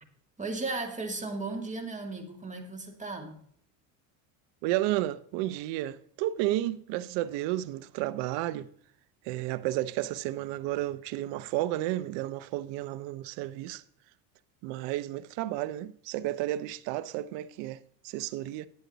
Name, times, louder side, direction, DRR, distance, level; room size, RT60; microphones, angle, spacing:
voice 1, 0.4-3.4, right 3 dB, 15° right, 2.0 m, -35 dB
voice 2, 4.6-8.7 9.2-13.8 14.6-18.7, right 15 dB, 65° right, 0.7 m, -32 dB
10.5 x 8.0 x 4.0 m
supercardioid pair, 90°, 48 cm